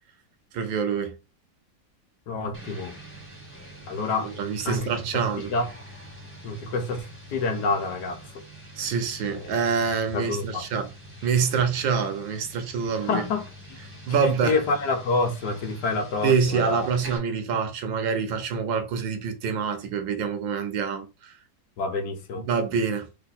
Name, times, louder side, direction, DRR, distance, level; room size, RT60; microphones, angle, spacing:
voice 1, 0.5-1.2 4.2-5.5 8.8-10.9 11.2-13.2 14.1-14.6 16.2-21.3 22.4-23.1, right 6 dB, 85° right, 1.6 m, -26 dB
voice 2, 2.3-3.0 3.9-4.3 4.6-5.2 5.5-5.7 6.4-7.1 7.3-8.2 9.3-9.5 10.1-10.6 13.0-13.8 14.1-16.9 21.8-22.4, left 3 dB, 65° left, 1.4 m, -28 dB
sound 1, 2.5-17.2, equal, 10° right, 1.0 m, -45 dB
4.0 x 2.6 x 4.1 m
omnidirectional pair, 2.0 m